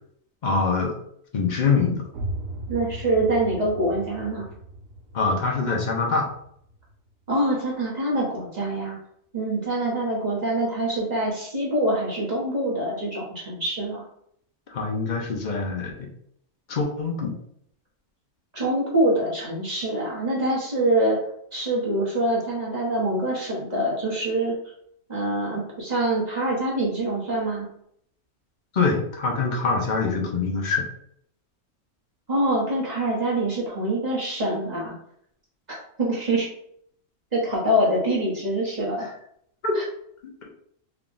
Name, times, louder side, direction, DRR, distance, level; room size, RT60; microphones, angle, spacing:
voice 1, 0.4-1.0 1.3-2.0 5.1-6.3 14.7-16.1 16.7-17.3 28.7-30.8 39.0-39.1 39.6-39.8, left 4 dB, 50° left, 0 dB, 0.5 m, -24 dB
sound 1, 2.1-7.7, right 1 dB, 70° right, 1.0 m, -37 dB
voice 2, 2.7-4.4 7.3-9.0 9.3-14.0 18.5-21.2 21.5-24.6 25.1-27.7 32.3-34.9 36.0-36.5 37.3-39.1 39.7-39.8, right 1 dB, 30° right, -5 dB, 1.0 m, -25 dB
3.5 x 2.3 x 3.8 m, 0.69 s
omnidirectional pair, 1.6 m